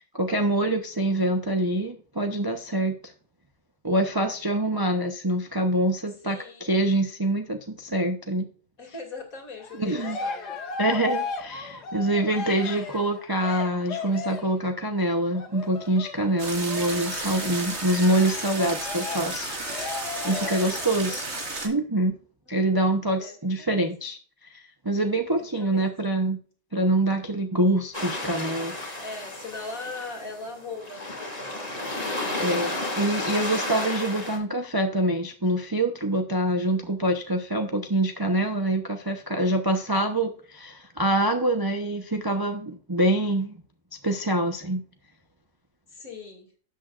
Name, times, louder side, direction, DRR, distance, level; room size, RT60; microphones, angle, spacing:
voice 1, 0.0-3.1 3.8-8.5 9.8-10.2 10.8-19.5 20.2-21.3 21.6-22.1 22.5-24.2 24.5-26.4 26.7-28.7 32.4-43.6 44.0-44.8, right 1 dB, 20° right, 4 dB, 0.6 m, -25 dB
voice 2, 6.1-6.7 8.8-10.6 12.3-12.6 20.3-20.8 21.1-21.4 22.5-23.9 25.3-26.1 28.9-31.9 45.9-46.5, left 3 dB, 55° left, 1 dB, 3.2 m, -41 dB
Cheering, 9.6-14.6 15.3-20.9, left 4 dB, 75° left, 1.9 m, -36 dB
sound 1, 16.4-21.7, right 2 dB, 45° right, 2.3 m, -33 dB
sound 2, 27.9-34.4, left 1 dB, 25° left, 2.5 m, -32 dB
12.5 x 8.3 x 2.5 m, 0.42 s
omnidirectional pair, 1.7 m